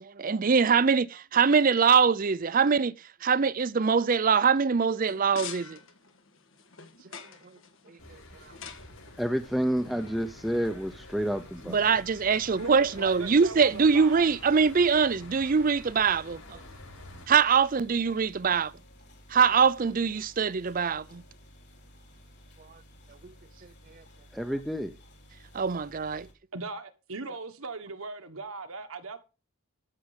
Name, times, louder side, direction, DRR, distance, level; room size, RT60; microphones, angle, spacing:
voice 1, 0.0-2.9 3.2-5.8 11.7-16.6 17.3-18.7 19.3-21.2 23.2-23.3 25.5-26.3, right 5 dB, 40° right, 0.5 m, -23 dB
sound 1, 5.0-10.5, left 7 dB, 65° left, 1.5 m, -47 dB
sound 2, 8.0-17.3, left 2 dB, 85° left, 7.4 m, -49 dB
voice 2, 9.2-11.8 24.3-24.9, equal, ahead, 0.7 m, -29 dB
sound 3, 10.1-26.3, equal, 50° left, 3.4 m, -54 dB
voice 3, 12.6-14.2 26.5-29.2, right 3 dB, 80° right, 1.5 m, -39 dB
13.0 x 6.8 x 5.1 m
head